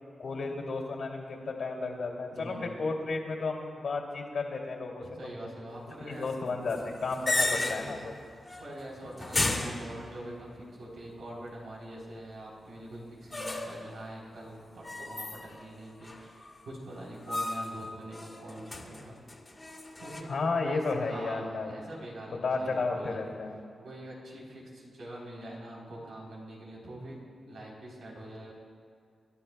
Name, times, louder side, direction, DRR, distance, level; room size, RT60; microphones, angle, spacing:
voice 1, 0.2-5.3 6.0-8.2 20.3-21.7 22.4-23.6, left 3 dB, 70° left, 0 dB, 2.6 m, -33 dB
voice 2, 2.3-2.8 5.2-6.3 7.3-7.6 8.6-19.2 20.0-23.2 23.8-28.5, right 1 dB, 85° right, -4 dB, 3.6 m, -44 dB
sound 1, 6.7-8.1 8.4-8.8 9.2-10.5 13.3-13.9 14.8-15.7 16.0-16.6 17.3-17.8 18.1-20.2, left 2 dB, 30° left, 2.0 m, -34 dB
27.0 x 12.0 x 2.3 m, 2.3 s
cardioid pair, 55°, 0 cm